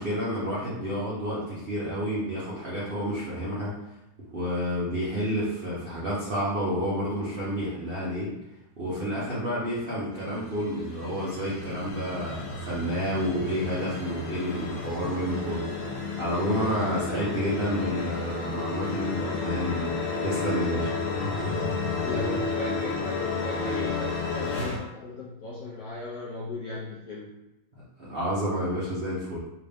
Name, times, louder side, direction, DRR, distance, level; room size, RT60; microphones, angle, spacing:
voice 1, 0.0-3.7 4.3-8.3 8.8-19.9 20.2-20.9 27.7-29.4, equal, 70° right, -8 dB, 0.5 m, -30 dB
sound 1, 10.2-24.8, left 4 dB, 90° left, 1.5 m, -32 dB
voice 2, 22.0-27.3, left 2 dB, 75° left, -5 dB, 0.8 m, -37 dB
3.6 x 2.5 x 3.4 m, 0.92 s
omnidirectional pair, 2.2 m